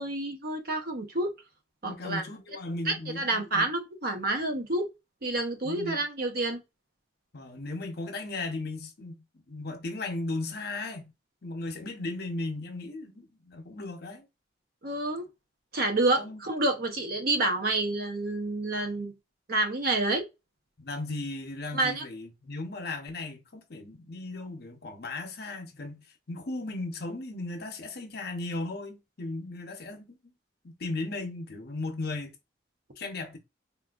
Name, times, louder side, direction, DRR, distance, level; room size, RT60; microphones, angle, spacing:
voice 1, 0.0-1.3 1.8-2.2 2.9-4.9 5.2-6.6 14.8-15.2 15.7-19.1 19.5-20.2 21.7-22.0, right 2 dB, 50° right, 0.7 m, -28 dB
voice 2, 1.8-3.7 5.6-6.0 7.3-11.1 11.4-14.2 16.2-16.4 20.8-30.2 30.6-32.3 33.0-33.4, left 2 dB, 55° left, 0.8 m, -36 dB
3.6 x 2.6 x 2.3 m
head